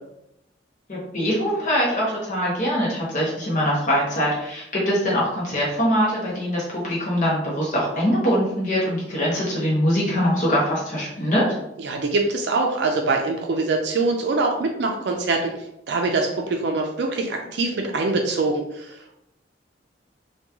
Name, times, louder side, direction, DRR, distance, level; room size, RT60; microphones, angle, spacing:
voice 1, 0.9-11.5, equal, 45° left, -5 dB, 0.8 m, -23 dB
voice 2, 11.8-15.5 15.9-19.1, right 3 dB, 65° right, 2 dB, 0.4 m, -24 dB
3.0 x 2.3 x 3.5 m, 0.81 s
head